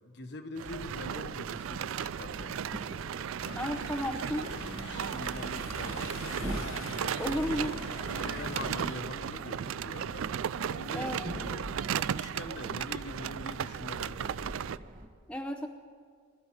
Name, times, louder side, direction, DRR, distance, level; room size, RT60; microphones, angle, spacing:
voice 1, 0.0-3.0 4.0-6.3 7.0-7.8 8.0-10.3 10.7-14.8, left 2 dB, 55° left, 6 dB, 1.2 m, -44 dB
sound 1, 0.6-15.1, equal, 40° right, 1.7 m, -45 dB
sound 2, 0.6-14.8, right 8 dB, 85° right, 0.4 m, -36 dB
sound 3, 3.4-9.0, left 2 dB, 85° left, 1.1 m, -43 dB
voice 2, 3.5-4.5 7.2-7.7 10.9-11.3 15.3-15.7, equal, 5° left, 3 dB, 0.7 m, -33 dB
22.5 x 12.5 x 4.7 m, 2.1 s
head